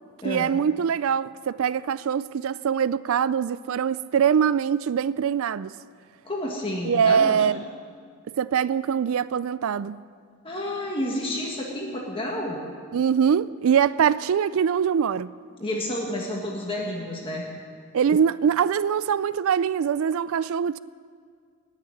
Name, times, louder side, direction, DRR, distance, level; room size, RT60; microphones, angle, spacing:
voice 1, 0.2-5.7 6.8-7.6 8.4-10.0 12.9-15.3 17.9-20.8, right 7 dB, 65° right, 0.3 m, -23 dB
voice 2, 6.2-7.5 10.4-12.6 15.6-17.4, left 1 dB, 25° left, 1.5 m, -30 dB
18.5 x 6.7 x 9.7 m
head